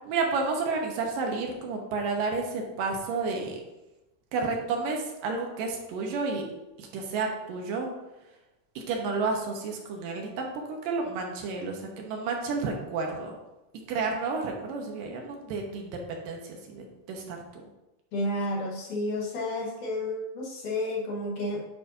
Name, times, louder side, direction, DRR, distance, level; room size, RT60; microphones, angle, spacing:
voice 1, 0.1-3.6 4.3-6.4 6.8-7.9 8.8-13.4 13.9-17.4, right 4 dB, 80° right, 1 dB, 2.5 m, -31 dB
voice 2, 18.1-21.7, left 1 dB, 70° left, -3 dB, 2.5 m, -31 dB
9.1 x 5.1 x 2.6 m, 1.0 s
omnidirectional pair, 4.0 m